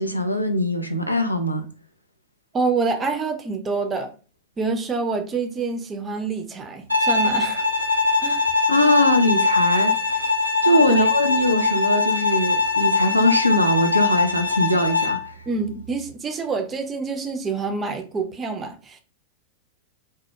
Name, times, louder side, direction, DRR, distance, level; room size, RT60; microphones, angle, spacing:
voice 1, 0.0-1.6 8.3-8.4 8.7-10.3 10.6-15.4, left 1 dB, 85° left, 0.3 m, -21 dB
voice 2, 2.5-4.1 4.6-7.7 8.2-8.4 10.9-11.0 15.5-19.0, right 4 dB, 20° right, 0.4 m, -27 dB
Bowed string instrument, 6.9-15.3, left 4 dB, 90° right, 0.4 m, -21 dB
2.1 x 2.0 x 2.8 m
figure-of-eight pair, 90°, 0 cm